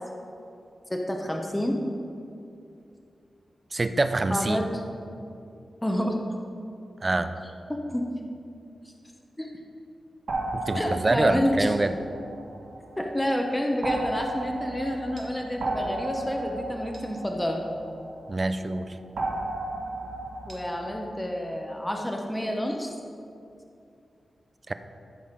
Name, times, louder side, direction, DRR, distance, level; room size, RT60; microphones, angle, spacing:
voice 1, 0.9-1.8 4.3-4.8 5.8-6.2 7.7-8.1 9.4-9.5 10.8-11.7 13.0-17.6 20.5-22.9, left 1 dB, 10° left, 2 dB, 0.7 m, -28 dB
voice 2, 3.7-4.7 7.0-7.3 10.5-11.9 18.3-19.0 24.7-24.8, right 2 dB, 25° right, 10 dB, 0.4 m, -25 dB
sound 1, 10.3-13.0 13.8-18.4 19.2-20.9, right 2 dB, 60° right, 1.3 m, -34 dB
14.0 x 5.6 x 5.0 m, 2.6 s
wide cardioid pair, 150°, 0 cm